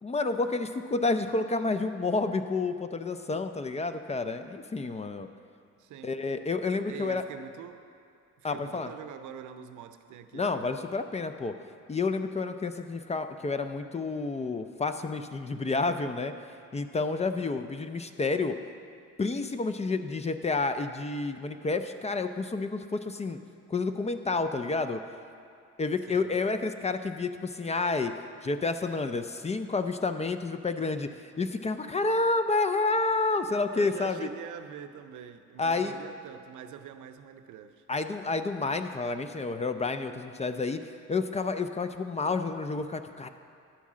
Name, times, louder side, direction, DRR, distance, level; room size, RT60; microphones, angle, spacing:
voice 1, 0.0-5.3 6.0-7.2 8.4-8.9 10.3-11.6 11.9-16.3 16.7-18.6 19.2-23.4 23.7-25.0 25.8-28.1 28.4-34.3 35.6-36.0 37.9-43.3, left 3 dB, 20° left, 9 dB, 0.4 m, -30 dB
voice 2, 5.8-6.1 6.9-7.8 8.4-10.7 26.1-26.3 33.3-37.8, right 9 dB, 80° right, 9 dB, 0.6 m, -44 dB
10.5 x 4.7 x 7.4 m, 2.5 s
cardioid pair, 90°, 30 cm